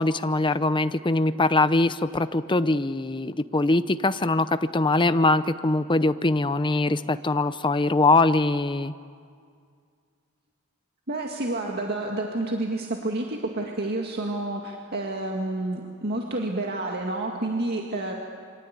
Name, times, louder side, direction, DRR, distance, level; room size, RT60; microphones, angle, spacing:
voice 1, 0.0-8.9, left 2 dB, 20° left, 12 dB, 0.7 m, -22 dB
voice 2, 11.1-18.1, right 2 dB, 45° right, 0 dB, 2.1 m, -29 dB
28.0 x 24.5 x 8.4 m, 2.1 s
head